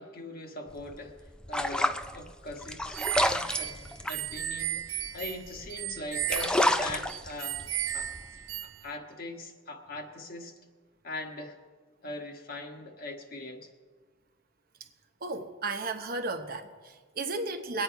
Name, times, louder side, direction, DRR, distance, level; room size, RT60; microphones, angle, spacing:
voice 1, 0.0-7.6 7.9-10.5 11.0-11.6 12.0-13.7, left 2 dB, 45° left, 1.4 m, -41 dB
sound 1, 0.7-5.8 6.1-8.6, left 1 dB, 5° left, 0.3 m, -30 dB
sound 2, 2.9-8.9, right 11 dB, 75° right, 0.5 m, -35 dB
voice 2, 15.2-17.8, right 3 dB, 45° right, 0.9 m, -34 dB
22.0 x 9.0 x 4.6 m
head